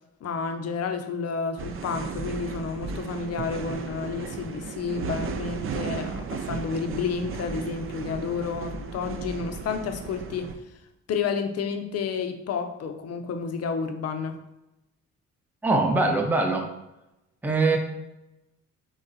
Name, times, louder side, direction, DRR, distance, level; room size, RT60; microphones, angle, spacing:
voice 1, 0.2-10.5 11.1-14.4, left 5 dB, 55° left, 7 dB, 0.6 m, -30 dB
sound 1, 1.6-10.5, right 5 dB, 45° right, 0.5 m, -35 dB
voice 2, 15.6-16.7 17.4-17.8, right 3 dB, 5° right, 2 dB, 0.6 m, -22 dB
4.0 x 3.2 x 4.0 m, 0.94 s
cardioid pair, 90°, 30 cm